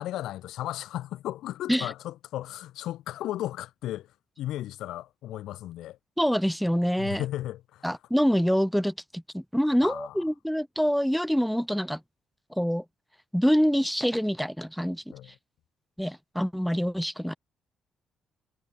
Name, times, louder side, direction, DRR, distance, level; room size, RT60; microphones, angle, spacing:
voice 1, 0.0-4.1 4.4-6.0 7.0-7.8 9.8-10.2 15.1-15.3, left 14 dB, 80° left, 6.4 m, -35 dB
voice 2, 6.2-7.2 7.8-12.0 12.5-12.8 13.3-15.1 16.0-17.3, equal, ahead, 6.7 m, -26 dB
supercardioid pair, 70°, 0 cm